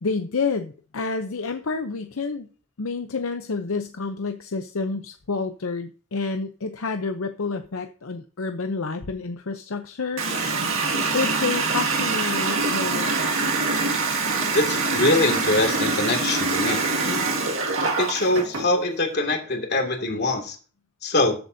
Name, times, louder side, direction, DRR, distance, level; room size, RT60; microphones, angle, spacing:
voice 1, 0.0-2.5 2.8-10.2 10.8-13.1, left 4 dB, 75° left, 7 dB, 0.7 m, -29 dB
Water tap faucet, 10.2-18.7, right 3 dB, 70° right, 2.0 m, -24 dB
voice 2, 14.5-16.8 18.0-20.6 21.0-21.4, left 2 dB, 50° left, 4 dB, 2.3 m, -23 dB
14.0 x 7.9 x 2.7 m, 0.38 s
head